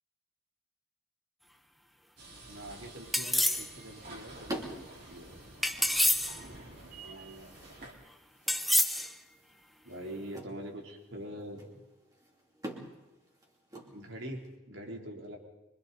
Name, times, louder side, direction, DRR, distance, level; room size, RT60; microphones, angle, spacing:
sound 1, 2.2-7.9, right 2 dB, 50° right, 4.2 m, -50 dB
voice 1, 2.4-5.3 7.0-7.5 9.8-11.6 13.8-15.4, right 1 dB, 80° right, 0 dB, 3.7 m, -44 dB
sound 2, 3.1-3.7 5.6-6.4 8.5-9.1, left 1 dB, ahead, 0.7 m, -27 dB
sound 3, 3.5-14.5, right 1 dB, 20° right, 2.9 m, -48 dB
25.0 x 24.5 x 4.2 m, 1.0 s
head